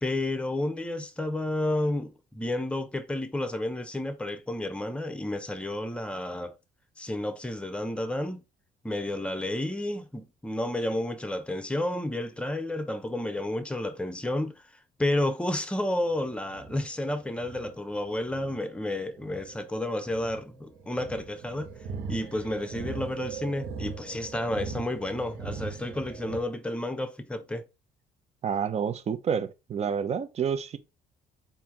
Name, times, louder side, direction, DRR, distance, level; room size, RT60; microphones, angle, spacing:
voice 1, 0.0-6.5 7.0-8.4 8.8-14.6 15.0-21.7 22.1-27.6, left 1 dB, 5° left, 0.8 m, -31 dB
sound 1, 16.0-26.4, right 5 dB, 65° right, 1.2 m, -40 dB
voice 2, 28.4-30.8, right 7 dB, 40° right, 0.6 m, -29 dB
4.3 x 2.7 x 3.7 m
cardioid pair, 110°, 17 cm